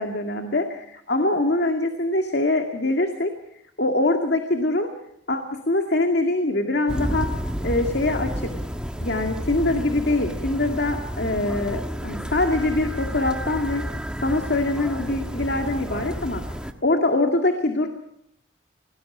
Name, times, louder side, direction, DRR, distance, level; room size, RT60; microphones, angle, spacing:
voice 1, 0.0-3.3 3.8-4.9 5.3-7.3 7.6-8.5 9.0-13.8 14.2-16.4 16.8-17.9, left 2 dB, 60° left, 4 dB, 2.1 m, -23 dB
sound 1, 6.9-16.7, equal, 5° right, 1.4 m, -31 dB
27.0 x 19.5 x 6.2 m, 0.74 s
head